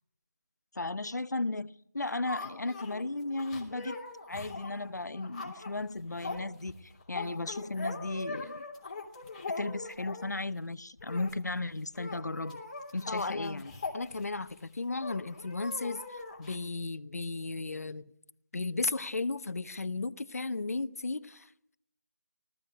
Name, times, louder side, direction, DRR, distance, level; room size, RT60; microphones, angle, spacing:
voice 1, 0.7-4.0 4.3-8.6 9.6-12.6 12.9-13.7, left 2 dB, 90° left, 0.9 m, -35 dB
sound 1, 2.0-10.4 11.0-11.3 11.6-11.7 11.9-14.6 15.0-16.6, left 3 dB, 25° left, 3.3 m, -41 dB
voice 2, 13.1-13.7 13.9-18.1 18.5-21.7, left 3 dB, 60° left, 1.0 m, -35 dB
19.5 x 14.5 x 10.0 m
figure-of-eight pair, 170°, 9 cm